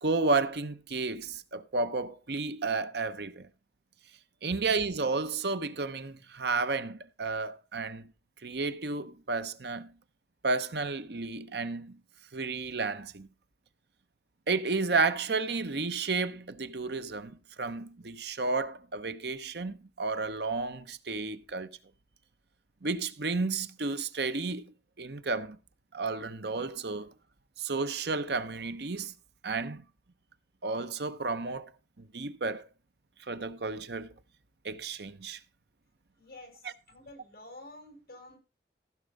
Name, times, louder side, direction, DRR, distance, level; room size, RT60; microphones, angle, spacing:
voice 1, 0.0-3.5 4.4-8.1 8.4-9.9 10.4-12.0 12.3-13.3 14.5-21.7 22.8-25.6 25.9-27.1 27.6-29.1 29.4-29.8 30.6-31.7 32.0-32.7 33.3-34.1 34.6-35.4 36.6-36.7, right 3 dB, 65° right, 0.9 m, -32 dB
voice 2, 36.2-36.6 36.9-38.4, left 1 dB, 55° left, 6.3 m, -49 dB
15.0 x 6.0 x 5.3 m
head